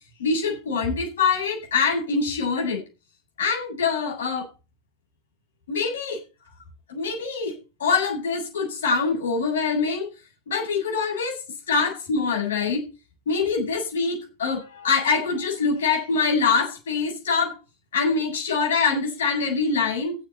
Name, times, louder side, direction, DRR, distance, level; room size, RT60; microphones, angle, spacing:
voice 1, 0.2-2.8 3.4-4.5 5.7-6.2 6.9-10.1 10.5-12.8 13.3-17.6 17.9-20.2, left 5 dB, 65° left, 1 dB, 8.0 m, -24 dB
15.5 x 8.8 x 4.6 m, 0.30 s
figure-of-eight pair, 90°, 0 cm